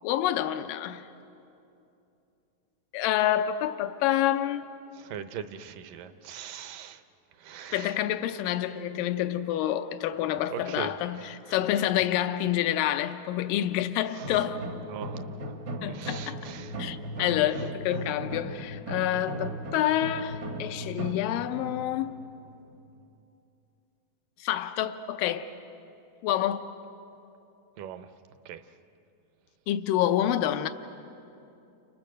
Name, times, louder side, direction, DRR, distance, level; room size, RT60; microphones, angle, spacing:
voice 1, 0.0-1.0 2.9-4.6 7.7-14.6 15.8-16.4 16.8-22.2 24.4-25.5 26.2-26.7 29.7-30.7, left 12 dB, 75° left, 2.3 m, -28 dB
voice 2, 4.9-7.0 7.4-8.0 10.3-11.9 14.1-14.4 14.9-15.3 15.8-16.8 27.8-28.1 28.5-28.6, right 8 dB, 75° right, 2.3 m, -41 dB
sound 1, 14.2-23.0, right 1 dB, 55° right, 1.1 m, -37 dB
29.5 x 29.0 x 6.5 m
omnidirectional pair, 4.2 m